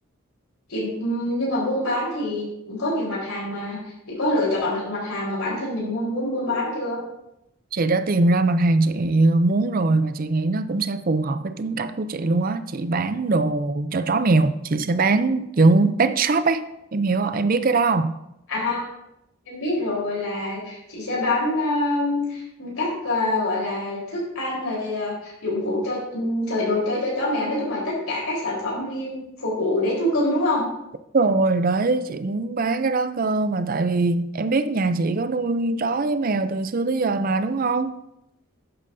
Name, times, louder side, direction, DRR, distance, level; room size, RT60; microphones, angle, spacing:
voice 1, 0.7-3.8 4.1-7.0 18.5-18.9 19.5-30.6, left 1 dB, 90° left, 4.0 m, -25 dB
voice 2, 7.7-16.6 16.9-18.2 31.1-37.9, right 3 dB, 40° right, 0.5 m, -21 dB
12.0 x 8.9 x 2.7 m
head